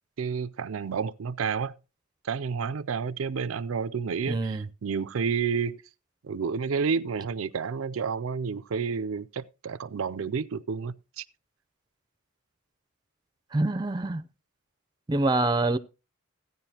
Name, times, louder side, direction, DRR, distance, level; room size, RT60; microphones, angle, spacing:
voice 1, 0.2-1.7 2.2-5.8 6.2-11.2, right 5 dB, 85° right, 0.5 m, -30 dB
voice 2, 4.3-4.7 13.5-14.2 15.1-15.8, right 2 dB, 20° right, 0.6 m, -25 dB
15.5 x 9.6 x 2.8 m
head